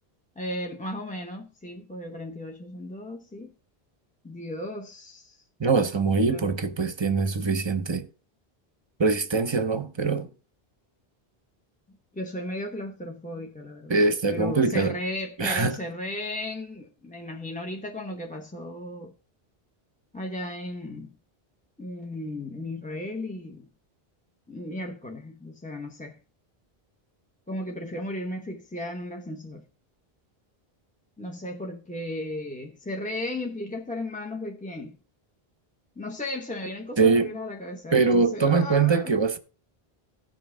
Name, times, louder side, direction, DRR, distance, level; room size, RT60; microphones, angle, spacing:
voice 1, 0.4-3.5 4.2-5.4 6.3-6.4 12.1-14.0 14.3-19.1 20.1-21.1 21.8-23.7 24.5-26.2 27.5-29.7 31.2-35.0 36.0-39.1, left 1 dB, 10° left, 0.8 m, -35 dB
voice 2, 5.6-8.1 9.0-10.3 13.9-15.0 15.4-15.8 37.0-37.4 37.9-39.4, right 4 dB, 30° right, 0.8 m, -23 dB
16.0 x 5.4 x 3.7 m
omnidirectional pair, 1.0 m